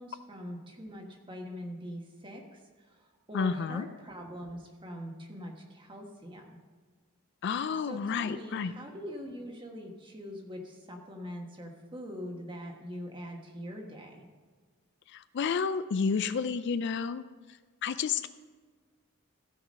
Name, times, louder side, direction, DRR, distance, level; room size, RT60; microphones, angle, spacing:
voice 1, 0.0-6.6 7.8-14.3, equal, 25° right, 1 dB, 1.4 m, -43 dB
voice 2, 3.3-3.9 7.4-8.7 15.1-17.2 17.8-18.3, left 5 dB, 55° left, 13 dB, 0.4 m, -30 dB
15.5 x 6.1 x 5.3 m, 1.5 s
head